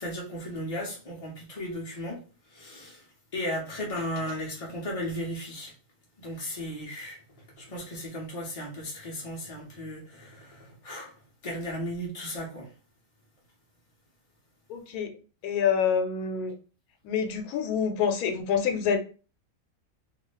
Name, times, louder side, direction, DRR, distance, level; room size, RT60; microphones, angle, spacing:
voice 1, 0.0-2.2 2.5-3.1 3.3-5.7 6.2-7.2 7.6-11.1 11.4-12.7, equal, 50° left, 0.4 m, -35 dB
voice 2, 14.7-15.1 15.4-16.5 17.0-19.0, left 7 dB, 90° left, 1.1 m, -26 dB
2.7 x 2.3 x 3.1 m
omnidirectional pair, 1.5 m